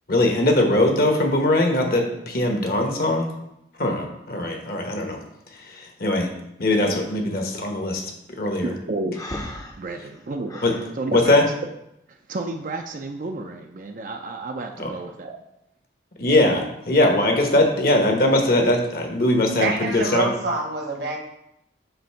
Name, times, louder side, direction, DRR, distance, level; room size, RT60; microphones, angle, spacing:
voice 1, 0.1-3.3 3.8-5.2 5.7-6.3 6.6-8.0 8.4-8.7 10.6-10.7 11.1-11.4 14.8-14.9 16.2-20.3, left 1 dB, 50° left, 2 dB, 1.0 m, -21 dB
voice 2, 8.6-9.2 9.8-10.7 11.0-11.4 12.3-15.4, right 2 dB, 45° right, 4 dB, 0.4 m, -31 dB
Breathing, 9.1-10.9, left 1 dB, 20° left, 0.6 m, -36 dB
voice 3, 19.6-21.2, right 3 dB, 60° right, 2 dB, 1.1 m, -26 dB
7.7 x 2.6 x 5.6 m, 0.83 s
head